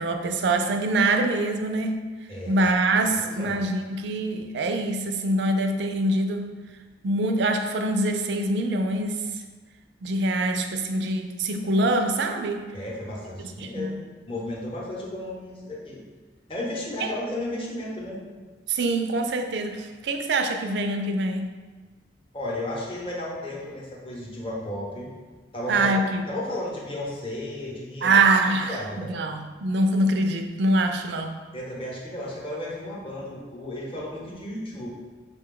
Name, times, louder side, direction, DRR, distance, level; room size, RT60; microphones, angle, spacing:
voice 1, 0.0-1.9 2.5-6.5 7.0-9.3 10.0-12.6 13.6-14.0 17.0-17.1 18.7-21.5 25.7-26.2 28.0-28.8 29.1-31.4, right 2 dB, 80° right, 5 dB, 0.4 m, -24 dB
voice 2, 3.0-3.6 12.7-16.0 16.5-18.2 22.3-25.1 25.5-26.0 26.3-28.2 28.7-29.2 31.5-34.9, left 1 dB, 30° left, -3 dB, 0.8 m, -34 dB
5.5 x 2.2 x 3.7 m, 1.3 s
head